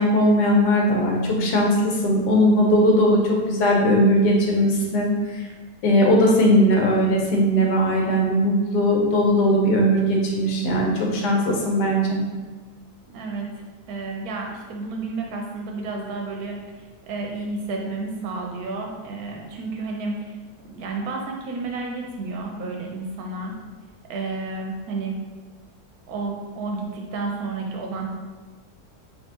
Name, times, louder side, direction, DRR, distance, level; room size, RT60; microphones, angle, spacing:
voice 1, 0.0-3.2 3.5-5.5 5.8-12.2, equal, 75° left, -1 dB, 1.3 m, -19 dB
voice 2, 13.1-20.4 20.6-23.6 24.1-25.1 26.1-28.1, right 3 dB, 70° right, 1 dB, 1.0 m, -31 dB
4.5 x 2.7 x 2.9 m, 1.3 s
omnidirectional pair, 1.8 m